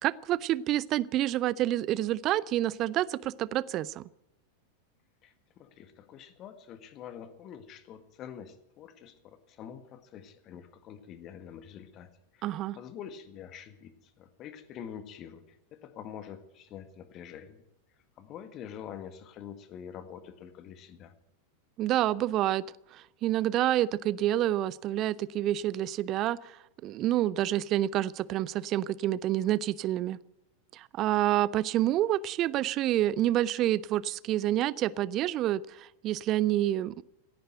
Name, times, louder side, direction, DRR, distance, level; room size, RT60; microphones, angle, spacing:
voice 1, 0.0-4.0 12.4-12.8 21.8-22.6 22.9-30.2 30.7-37.0, right 13 dB, 35° right, 22 dB, 0.5 m, -28 dB
voice 2, 5.2-17.6 18.2-21.1, left 8 dB, 35° left, 11 dB, 1.7 m, -46 dB
17.0 x 10.0 x 7.7 m, 0.86 s
figure-of-eight pair, 90°, 0 cm